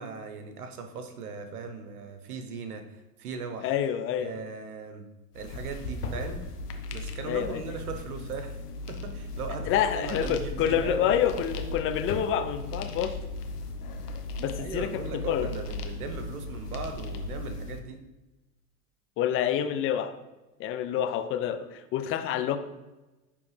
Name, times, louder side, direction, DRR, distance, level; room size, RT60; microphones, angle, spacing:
voice 1, 0.0-2.8 3.2-3.8 4.2-5.1 5.3-6.4 6.9-8.6 8.9-11.2 14.5-18.0, right 5 dB, 75° right, 6 dB, 0.9 m, -38 dB
voice 2, 3.6-4.3 7.3-7.6 9.7-13.2 14.4-15.5 19.2-20.1 20.6-22.6, left 9 dB, 30° left, 9 dB, 0.5 m, -28 dB
sound 1, 5.3-17.8, left 2 dB, 85° left, 0.9 m, -37 dB
9.8 x 3.4 x 3.3 m, 1.1 s
hypercardioid pair, 85°, 45 cm